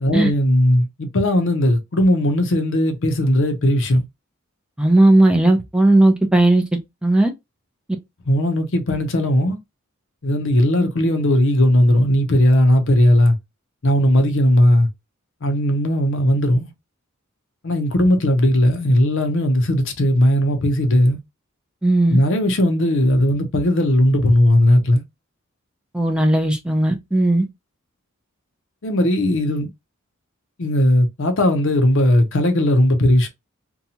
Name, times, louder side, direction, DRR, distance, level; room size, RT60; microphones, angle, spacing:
voice 1, 0.0-4.0 8.3-9.6 10.2-13.4 13.8-14.9 15.4-16.7 17.6-21.2 22.1-25.0 28.8-29.7 30.6-33.3, left 1 dB, 60° left, 0.7 m, -17 dB
voice 2, 4.8-6.6 7.0-7.3 21.8-22.2 25.9-27.4, right 1 dB, 5° right, 0.4 m, -16 dB
2.7 x 2.2 x 2.7 m
head